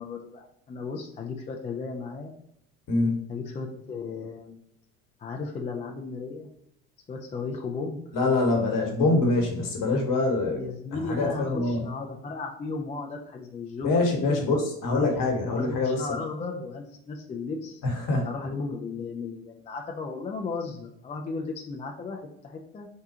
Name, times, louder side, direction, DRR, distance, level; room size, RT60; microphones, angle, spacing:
voice 1, 0.0-2.3 3.3-4.6 5.2-6.5 7.1-8.0 10.6-13.9 14.2-14.4 14.8-15.1 15.4-17.8 18.2-22.9, left 4 dB, 20° left, 1 dB, 0.3 m, -35 dB
voice 2, 2.9-3.2 8.1-10.6 10.9-11.9 13.8-16.1 17.8-18.3, left 2 dB, 50° left, 1 dB, 1.2 m, -24 dB
3.7 x 2.3 x 2.8 m, 0.76 s
hypercardioid pair, 70°, 43 cm